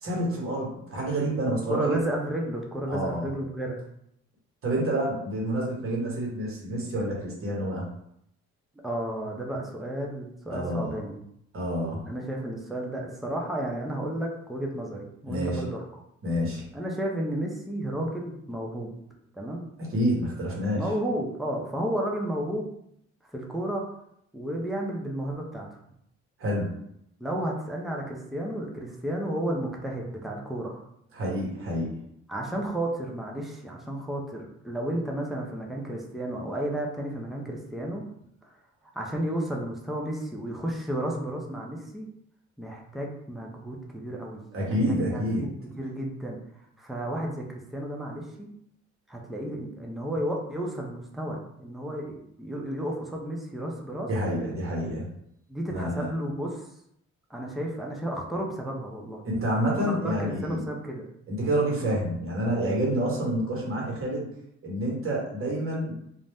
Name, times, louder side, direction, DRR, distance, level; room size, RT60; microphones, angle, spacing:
voice 1, 0.0-2.0 2.9-3.3 4.6-7.9 10.5-11.0 11.5-12.0 15.3-15.7 16.2-16.7 19.9-20.8 26.4-26.8 31.1-32.0 44.5-45.4 54.1-55.1 55.7-56.1 59.2-60.7 61.3-64.3 64.6-66.0, right 1 dB, 45° right, -3 dB, 1.2 m, -28 dB
voice 2, 1.7-3.8 8.8-11.2 12.1-15.9 16.7-18.9 19.3-19.6 20.7-22.7 23.3-23.8 24.3-25.7 27.2-30.8 32.3-38.0 38.9-42.1 42.6-44.4 44.7-45.5 45.8-46.4 46.8-48.5 49.1-54.1 55.5-56.7 57.3-59.2 59.7-61.1, right 1 dB, ahead, -1 dB, 0.5 m, -32 dB
2.6 x 2.1 x 3.4 m, 0.75 s
cardioid pair, 90°, 30 cm